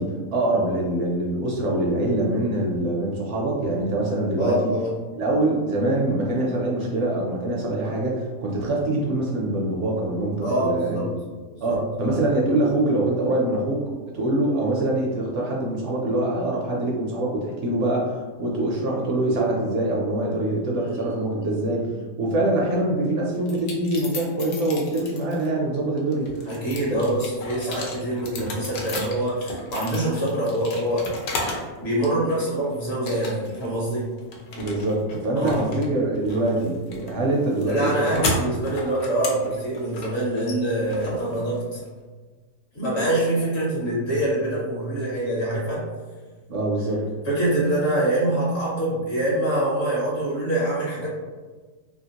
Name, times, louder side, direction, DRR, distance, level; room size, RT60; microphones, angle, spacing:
voice 1, 0.0-4.7 5.1-11.1 11.6-21.9 22.2-26.5 26.9-27.0 27.6-27.8 34.6-38.3 46.5-47.1, right 1 dB, 65° right, -2 dB, 0.8 m, -24 dB
voice 2, 4.4-5.0 10.4-11.1 11.6-11.8 20.8-21.5 21.8-21.9 26.4-31.1 31.8-34.1 35.3-35.7 37.7-41.8 42.7-45.8 47.2-51.1, right 1 dB, 55° left, -5 dB, 1.0 m, -25 dB
Locked Door, 23.5-25.5 26.0-31.7 32.0-32.6 33.1-33.7 33.9-41.9, left 2 dB, 75° left, 1.1 m, -34 dB
2.8 x 2.7 x 2.8 m, 1.4 s
omnidirectional pair, 1.5 m